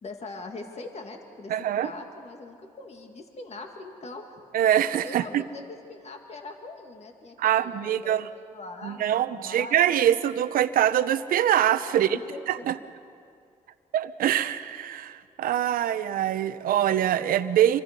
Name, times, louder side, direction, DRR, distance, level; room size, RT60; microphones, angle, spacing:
voice 1, 0.0-4.4 5.0-5.6 5.9-10.0 11.9-12.7, left 3 dB, 45° left, 3 dB, 2.3 m, -42 dB
voice 2, 1.5-1.9 4.5-5.4 7.4-8.3 8.8-12.2 12.5-12.7 13.9-17.8, right 11 dB, 80° right, 12 dB, 0.8 m, -24 dB
26.5 x 24.0 x 5.3 m, 2.3 s
supercardioid pair, 65°, 15 cm